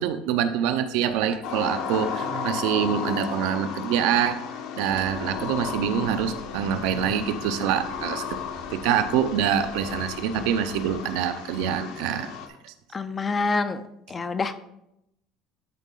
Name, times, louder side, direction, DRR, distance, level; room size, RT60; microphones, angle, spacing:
voice 1, 0.0-4.4 4.8-8.3 8.7-12.3 12.6-12.7, right 9 dB, 75° right, 9 dB, 0.6 m, -25 dB
sound 1, 1.4-12.5, left 7 dB, 70° left, 1.1 m, -34 dB
Guitar, 2.1-3.4, right 8 dB, 40° right, 0.7 m, -44 dB
sound 2, 4.9-10.9, left 3 dB, 90° left, 2.8 m, -45 dB
voice 2, 12.9-13.8 14.1-14.7, left 4 dB, 15° left, 11 dB, 0.4 m, -27 dB
12.5 x 4.1 x 3.8 m, 0.82 s
cardioid pair, 180°, 0 cm